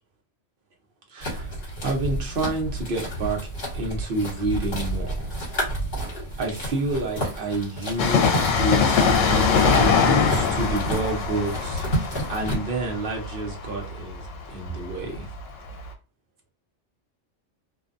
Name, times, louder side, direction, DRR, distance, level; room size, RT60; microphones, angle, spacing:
voice 1, 1.1-3.4 3.7-5.4 6.4-15.3, right 2 dB, 50° right, 0.8 m, -29 dB
sound 1, 1.2-12.6, right 1 dB, 50° left, 1.2 m, -31 dB
Train, 8.0-15.4 15.7-15.8, left 5 dB, 75° left, 0.9 m, -22 dB
2.6 x 2.2 x 2.4 m
omnidirectional pair, 1.3 m